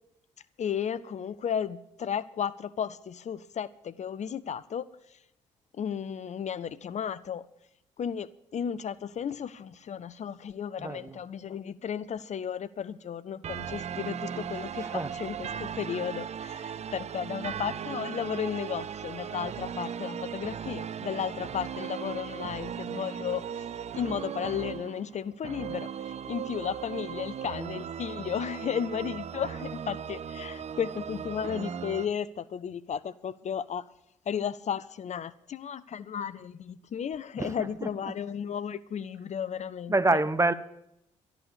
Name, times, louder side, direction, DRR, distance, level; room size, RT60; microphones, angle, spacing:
voice 1, 0.6-4.9 5.8-7.4 8.0-23.7 23.9-33.8 34.3-40.2, left 8 dB, 45° left, 0.6 m, -34 dB
voice 2, 10.8-11.2 14.8-15.1 37.4-37.5 37.8-37.9 39.9-40.5, right 2 dB, 20° right, 1.0 m, -26 dB
sound 1, 13.4-32.1, right 8 dB, 45° right, 0.6 m, -37 dB
12.5 x 11.0 x 6.9 m
hypercardioid pair, 45°, 16 cm